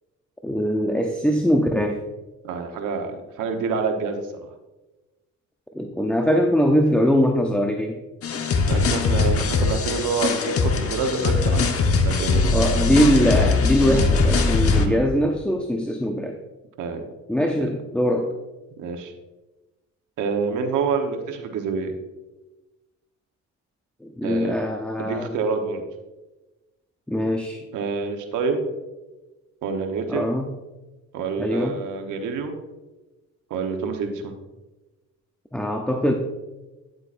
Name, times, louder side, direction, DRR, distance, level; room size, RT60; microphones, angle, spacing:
voice 1, 0.4-2.0 5.7-8.0 12.5-16.4 17.3-18.3 24.0-25.4 27.1-27.6 30.1-30.5 31.4-31.8 35.5-36.1, equal, 5° left, 2 dB, 0.7 m, -22 dB
voice 2, 2.4-4.5 8.7-12.8 13.8-14.1 14.8-15.0 16.8-17.1 17.5-17.6 18.8-19.1 20.2-22.0 24.2-24.6 25.0-25.8 27.7-28.7 29.6-30.3 31.1-32.6 33.5-34.3, right 4 dB, 85° right, 4 dB, 1.2 m, -27 dB
sound 1, 8.2-14.9, left 4 dB, 50° left, 1.0 m, -21 dB
10.0 x 7.9 x 2.6 m, 1.1 s
cardioid pair, 90°, 30 cm